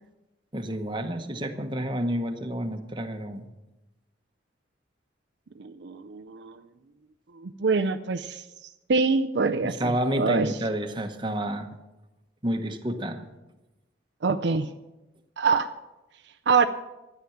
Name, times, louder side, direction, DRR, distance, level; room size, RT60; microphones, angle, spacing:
voice 1, 0.5-3.5 9.6-11.7 12.4-13.2, equal, 25° right, 6 dB, 1.1 m, -29 dB
voice 2, 5.6-6.6 7.4-8.4 8.9-9.9 10.2-10.5 14.2-14.7 15.4-15.7 16.5-16.7, right 4 dB, 65° right, 7 dB, 0.5 m, -24 dB
13.0 x 10.0 x 7.2 m, 1.0 s
head